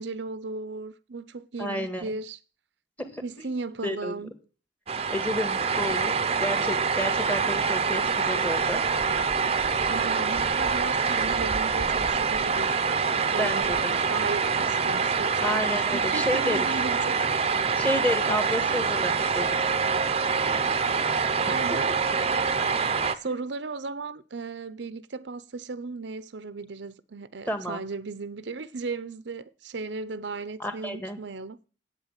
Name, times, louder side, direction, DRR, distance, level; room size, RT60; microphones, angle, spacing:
voice 1, 0.0-2.4 3.2-4.3 9.9-12.7 13.3-15.7 15.9-17.6 18.3-18.4 21.4-21.9 23.1-31.6, right 4 dB, 65° right, 0.6 m, -36 dB
voice 2, 1.6-2.1 3.0-3.2 3.8-4.1 5.1-9.0 13.4-13.9 15.4-16.6 17.8-19.6 21.7-21.9 27.5-27.8 30.6-31.2, left 1 dB, 10° left, 1.8 m, -30 dB
sound 1, 4.9-23.2, right 5 dB, 35° right, 0.7 m, -25 dB
8.9 x 8.5 x 8.9 m
head